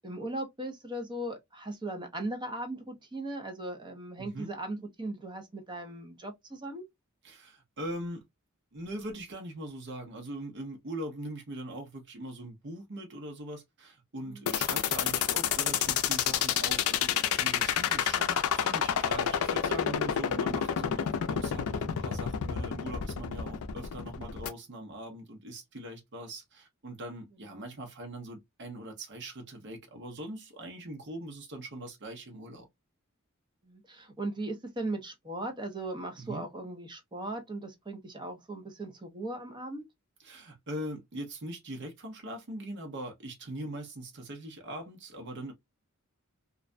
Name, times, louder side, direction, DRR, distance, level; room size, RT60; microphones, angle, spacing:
voice 1, 0.0-6.8 14.3-14.5 27.4-27.7 33.6-39.8, right 1 dB, 20° right, 0.7 m, -38 dB
voice 2, 4.2-4.5 7.2-8.2 8.7-32.7 36.2-36.5 40.2-45.5, right 1 dB, 55° right, 0.8 m, -41 dB
sound 1, 14.5-24.5, left 8 dB, 80° left, 0.4 m, -28 dB
2.4 x 2.1 x 2.4 m
head